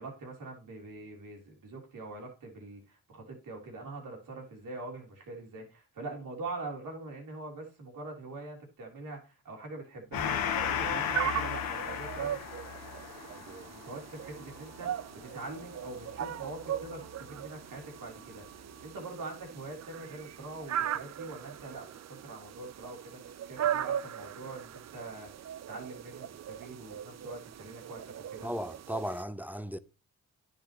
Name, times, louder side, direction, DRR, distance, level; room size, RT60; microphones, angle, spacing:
voice 1, 0.0-12.6 13.3-18.4 18.8-25.3 25.7-28.5, right 2 dB, 65° right, 3.4 m, -44 dB
Gong, 10.1-17.1, left 8 dB, 85° left, 1.2 m, -36 dB
sound 1, 10.2-29.2, right 10 dB, 50° right, 0.6 m, -39 dB
voice 2, 28.4-29.8, equal, 5° right, 0.7 m, -36 dB
10.0 x 7.5 x 3.0 m
supercardioid pair, 50°, 34 cm